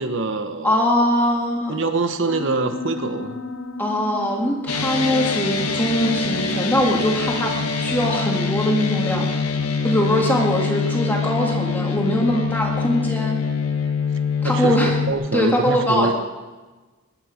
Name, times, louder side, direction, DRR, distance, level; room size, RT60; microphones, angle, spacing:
voice 1, 0.0-0.8 1.7-3.4 14.4-16.1, right 3 dB, 55° right, 8 dB, 1.0 m, -24 dB
voice 2, 0.6-1.8 3.8-9.3 9.8-13.4 14.4-15.0 15.3-16.1, equal, 10° left, -1 dB, 1.8 m, -22 dB
Piano, 2.3-8.5, left 2 dB, 70° left, 1.0 m, -36 dB
sound 1, 4.7-15.1, left 5 dB, 90° left, 1.5 m, -24 dB
21.0 x 11.0 x 5.1 m, 1.2 s
head